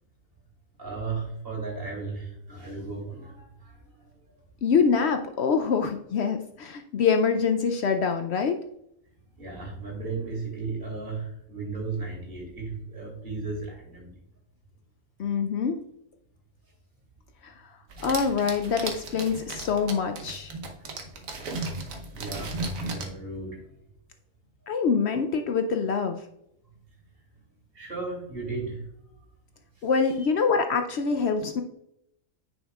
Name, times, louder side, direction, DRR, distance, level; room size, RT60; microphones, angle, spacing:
voice 1, 0.8-4.1 9.3-14.2 21.4-23.6 27.7-28.8 29.8-29.9 30.2-30.3, right 4 dB, 45° right, -2 dB, 2.9 m, -35 dB
voice 2, 4.6-8.6 15.2-15.8 17.4-17.5 18.0-20.5 24.7-26.2 29.8-31.6, left 5 dB, 65° left, 6 dB, 0.7 m, -25 dB
sound 1, 17.9-23.1, right 3 dB, 85° right, 1.4 m, -36 dB
9.7 x 5.4 x 2.3 m, 0.78 s
omnidirectional pair, 1.4 m